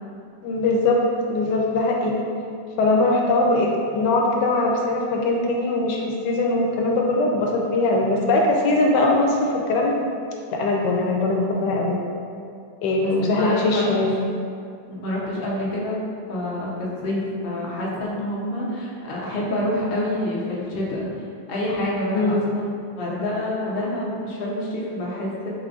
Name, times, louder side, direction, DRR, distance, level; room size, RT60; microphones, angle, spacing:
voice 1, 0.4-1.0 1.3-2.1 2.8-10.0 10.5-12.0 12.8-14.2 22.1-22.5, left 2 dB, 80° left, 0 dB, 1.2 m, -21 dB
voice 2, 12.9-13.9 14.9-16.0 16.3-21.1 21.5-22.7 23.0-25.5, left 1 dB, 55° left, -5 dB, 0.6 m, -27 dB
4.2 x 3.7 x 2.3 m, 2.4 s
omnidirectional pair, 1.9 m